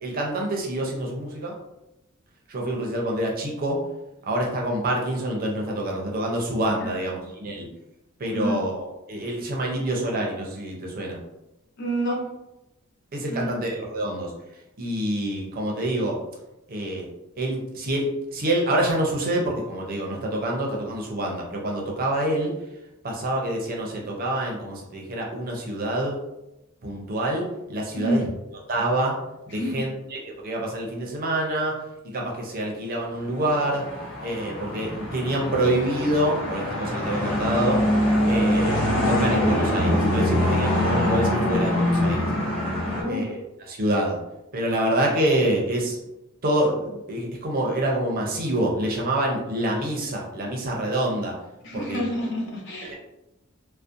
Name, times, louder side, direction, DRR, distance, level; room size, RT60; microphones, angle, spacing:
voice 1, 0.0-1.5 2.5-3.8 4.3-7.7 8.2-11.2 13.1-14.3 14.8-16.2 16.7-17.1 17.4-22.5 23.0-26.2 26.8-28.3 28.7-29.1 29.5-31.8 32.1-33.8 34.2-37.8 38.3-38.8 39.1-42.3 43.1-43.4 43.7-44.2 44.5-46.0 46.4-51.3 51.7-52.1 52.8-52.9, right 1 dB, 45° right, -1 dB, 0.5 m, -26 dB
voice 2, 6.8-7.2 8.3-8.6 11.8-12.3 13.3-13.6 27.9-28.3 29.5-29.9 42.8-43.3 51.6-53.0, equal, 55° left, -1 dB, 0.6 m, -28 dB
sound 1, 33.4-43.0, left 1 dB, 20° left, 1.2 m, -24 dB
2.6 x 2.0 x 2.4 m, 0.91 s
head